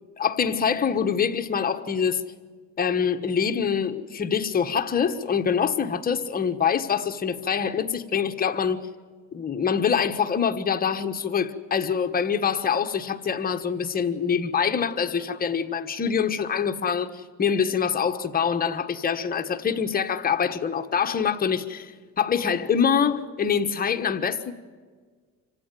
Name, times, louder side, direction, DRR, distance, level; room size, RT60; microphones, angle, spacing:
voice 1, 0.2-2.2 2.8-8.8 9.3-21.9 22.2-24.5, left 7 dB, 30° left, 1.3 m, -25 dB
26.5 x 16.0 x 9.1 m
cardioid pair, 130°, 30 cm